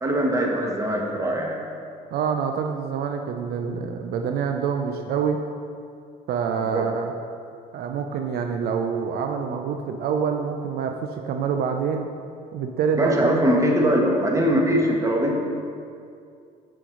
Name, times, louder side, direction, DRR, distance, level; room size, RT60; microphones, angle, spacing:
voice 1, 0.0-1.6 6.7-6.9 13.0-15.4, equal, 20° right, 0 dB, 1.2 m, -21 dB
voice 2, 2.1-5.4 6.3-7.1 7.7-12.1 12.5-13.3, right 6 dB, 65° right, 4 dB, 0.5 m, -26 dB
7.6 x 5.2 x 5.1 m, 2.4 s
cardioid pair, 110°, 17 cm